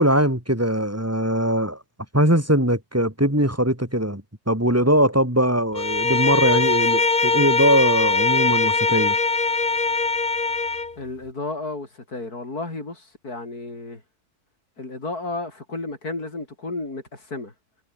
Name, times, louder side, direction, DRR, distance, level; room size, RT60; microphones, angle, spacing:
voice 1, 0.0-1.8 2.1-9.2, right 1 dB, 10° right, 3.9 m, -21 dB
Bowed string instrument, 5.7-10.9, left 3 dB, 35° left, 2.1 m, -21 dB
voice 2, 11.0-14.0 14.8-17.5, left 2 dB, 75° left, 5.6 m, -32 dB
omnidirectional pair, 1.6 m